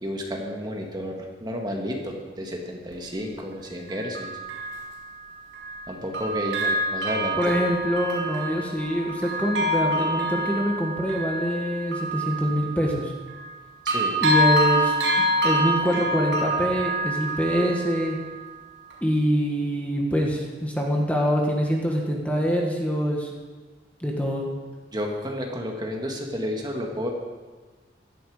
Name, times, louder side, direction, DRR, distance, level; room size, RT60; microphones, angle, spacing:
voice 1, 0.0-4.3 5.9-7.6 8.5-8.6 13.9-14.2 24.9-27.1, equal, 25° right, 1 dB, 1.9 m, -31 dB
Bell, 2.9-3.0 3.9-5.8 6.1-13.6 13.9-18.5 18.9-19.0, right 1 dB, 80° right, 5.6 m, -27 dB
voice 2, 7.3-13.1 14.2-18.2 19.0-23.3 24.0-24.5, equal, 10° left, -1 dB, 1.7 m, -25 dB
16.5 x 12.5 x 5.0 m, 1.3 s
head